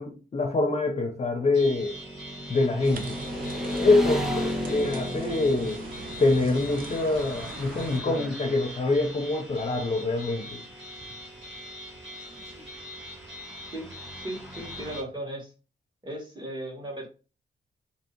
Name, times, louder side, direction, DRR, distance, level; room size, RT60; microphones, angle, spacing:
voice 1, 0.0-1.9 2.5-3.2 3.7-5.8 6.2-10.6, left 2 dB, 35° left, 0.7 m, -25 dB
sound 1, 1.5-15.0, equal, 75° right, 2.2 m, -43 dB
Motorcycle / Traffic noise roadway noise, 1.9-15.0, equal, ahead, 0.5 m, -37 dB
sound 2, 2.8-8.0, right 5 dB, 50° right, 0.5 m, -43 dB
voice 2, 14.1-15.5 16.0-17.1, right 1 dB, 25° right, 1.4 m, -36 dB
2.9 x 2.7 x 4.4 m
wide cardioid pair, 160°, 19 cm